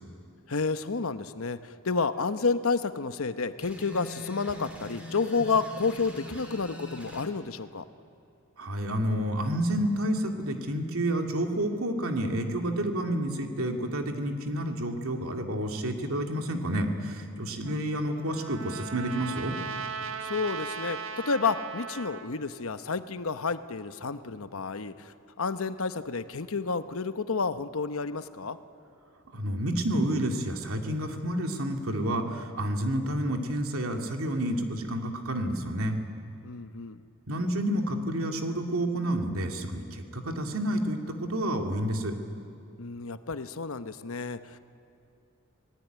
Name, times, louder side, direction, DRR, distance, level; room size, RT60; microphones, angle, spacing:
voice 1, 0.5-7.8 20.2-28.6 36.4-37.0 42.8-44.6, left 4 dB, 75° left, 11 dB, 0.9 m, -30 dB
sound 1, 3.6-7.3, left 1 dB, 5° right, 3.3 m, -43 dB
voice 2, 8.6-19.5 29.3-36.0 37.3-42.1, right 1 dB, 80° right, 4 dB, 2.5 m, -29 dB
Trumpet, 17.6-22.3, right 5 dB, 65° right, 1.4 m, -38 dB
25.5 x 19.0 x 9.2 m, 2.7 s
head